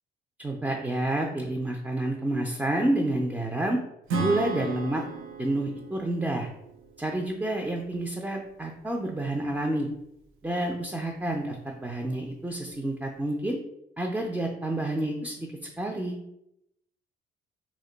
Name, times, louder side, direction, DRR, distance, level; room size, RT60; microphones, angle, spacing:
voice 1, 0.4-3.8 4.2-5.0 5.4-6.5 7.0-9.9 10.4-13.6 14.0-15.5 15.8-16.2, right 1 dB, 10° right, 1 dB, 0.4 m, -29 dB
Acoustic guitar / Strum, 4.1-7.7, right 3 dB, 85° right, 0.5 m, -35 dB
2.5 x 2.1 x 3.8 m, 0.81 s
cardioid pair, 90°, 20 cm